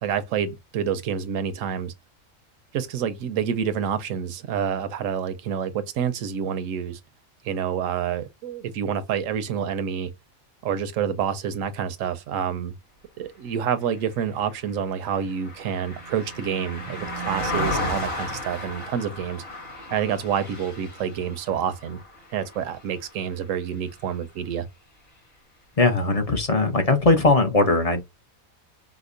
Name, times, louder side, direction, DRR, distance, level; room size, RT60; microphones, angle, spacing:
voice 1, 0.0-1.9 2.7-7.0 7.4-10.1 10.6-12.7 13.2-19.4 19.9-22.0 22.3-24.7, right 8 dB, 75° right, 0.9 m, -28 dB
Car passing by, 14.0-23.5 23.9-24.1, left 1 dB, 75° left, 2.5 m, -34 dB
voice 2, 25.8-28.0, left 3 dB, 40° left, 0.5 m, -19 dB
5.0 x 2.0 x 2.5 m
omnidirectional pair, 1.4 m